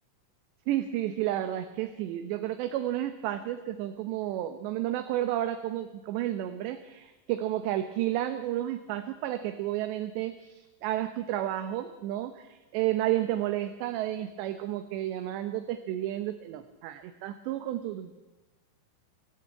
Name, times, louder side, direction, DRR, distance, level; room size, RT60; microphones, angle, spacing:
voice 1, 0.7-18.2, right 13 dB, 80° right, 8 dB, 3.2 m, -31 dB
25.5 x 14.5 x 9.0 m, 1.1 s
omnidirectional pair, 5.0 m